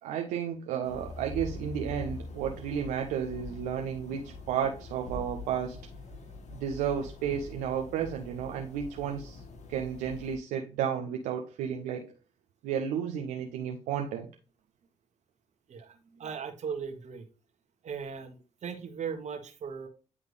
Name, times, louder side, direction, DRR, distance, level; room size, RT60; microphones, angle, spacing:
voice 1, 0.0-5.8 6.5-9.4 9.7-12.1 12.6-14.3, right 8 dB, 85° right, 0.7 m, -32 dB
sound 1, 0.8-10.4, left 2 dB, 65° left, 1.4 m, -44 dB
voice 2, 15.7-17.2 17.8-19.9, right 6 dB, 65° right, 1.5 m, -38 dB
9.7 x 3.5 x 3.4 m
supercardioid pair, 45°, 13 cm